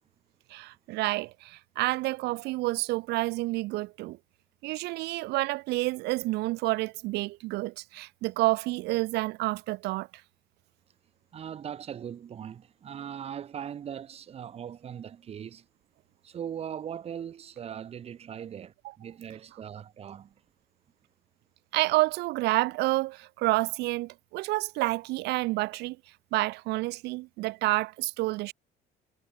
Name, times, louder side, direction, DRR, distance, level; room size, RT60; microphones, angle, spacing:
voice 1, 0.5-4.2 4.6-10.1 21.7-26.0 26.3-28.5, right 20 dB, 80° right, 0.4 m, -29 dB
voice 2, 11.3-15.6 16.2-20.3, right 9 dB, 35° right, 0.6 m, -40 dB
cardioid pair, 110°, 17 cm